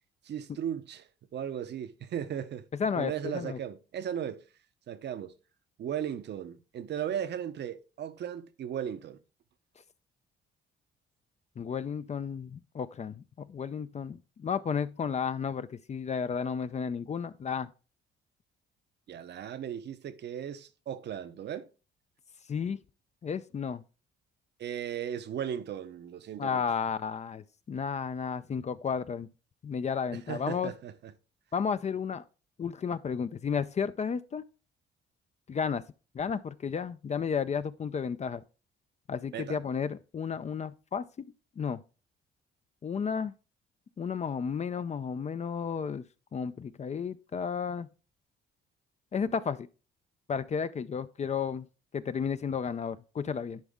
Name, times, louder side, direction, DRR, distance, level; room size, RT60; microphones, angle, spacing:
voice 1, 0.2-2.6 3.0-4.4 4.9-5.3 5.8-9.2 19.1-21.7 24.6-26.6 30.1-31.1 39.3-39.6, right 9 dB, 60° right, 0.7 m, -36 dB
voice 2, 2.8-3.6 11.6-17.7 22.5-22.8 23.2-23.8 26.4-29.3 29.6-30.7 31.5-32.2 32.6-34.4 35.5-35.8 36.1-38.4 39.1-41.0 41.6-41.8 42.8-43.3 44.0-46.1 46.3-47.9 49.1-49.7 50.3-51.7 51.9-53.6, left 6 dB, 35° left, 0.5 m, -32 dB
10.5 x 4.2 x 3.6 m
cardioid pair, 90°, 20 cm